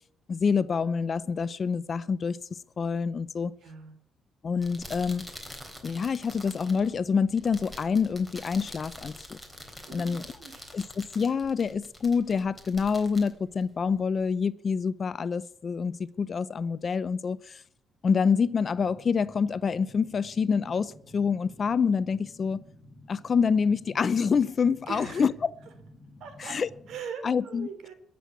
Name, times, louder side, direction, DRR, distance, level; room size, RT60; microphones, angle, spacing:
voice 1, 0.3-2.4 2.8-3.5 4.4-5.3 5.8-9.4 9.9-10.3 10.7-17.6 18.0-22.6 23.1-25.5 26.4-26.7 27.2-27.7, left 5 dB, 45° left, 0.6 m, -27 dB
voice 2, 3.6-3.9 9.9-10.7 24.9-25.3 26.2-26.6 26.9-27.9, right 6 dB, 75° right, 3.4 m, -41 dB
sound 1, 4.5-14.3, equal, 5° right, 3.6 m, -46 dB
sound 2, 18.4-27.0, left 1 dB, 15° left, 2.9 m, -52 dB
21.5 x 7.8 x 8.3 m
cardioid pair, 90°, 0 cm